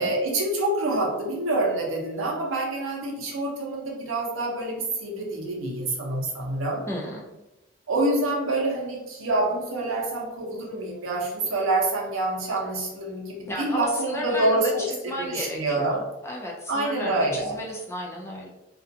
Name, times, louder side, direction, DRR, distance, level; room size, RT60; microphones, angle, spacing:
voice 1, 0.0-6.8 7.9-16.0 16.7-17.6, right 2 dB, 90° right, -1 dB, 0.7 m, -26 dB
voice 2, 6.9-7.2 13.5-15.9 16.2-18.5, equal, 15° left, -2 dB, 0.4 m, -33 dB
2.4 x 2.2 x 2.7 m, 0.98 s
head